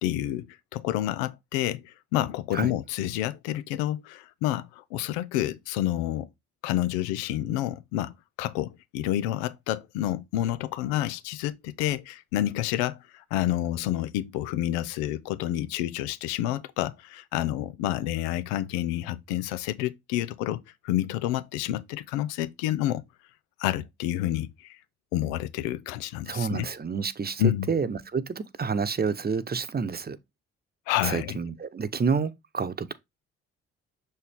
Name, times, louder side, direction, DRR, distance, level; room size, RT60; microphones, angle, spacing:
voice 1, 0.0-0.5 0.7-6.3 6.6-23.0 23.6-24.8 25.1-26.7 27.4-27.7 30.9-31.4, left 13 dB, 90° left, 0.6 m, -29 dB
voice 2, 26.3-27.4 27.7-30.2 31.0-32.9, right 5 dB, 30° right, 0.9 m, -29 dB
6.4 x 4.2 x 3.5 m
hypercardioid pair, 50°, 31 cm